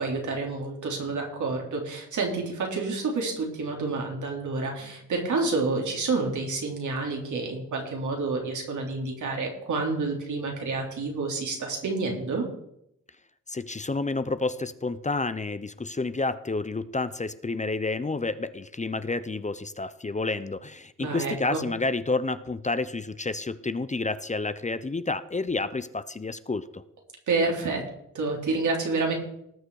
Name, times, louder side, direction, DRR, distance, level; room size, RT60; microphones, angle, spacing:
voice 1, 0.0-12.4 21.0-21.6 27.3-27.8 28.1-29.1, right 3 dB, 75° right, 1 dB, 3.5 m, -29 dB
voice 2, 13.5-26.8, left 3 dB, 25° left, 13 dB, 0.8 m, -30 dB
19.0 x 6.5 x 4.8 m, 0.78 s
cardioid pair, 60°, 30 cm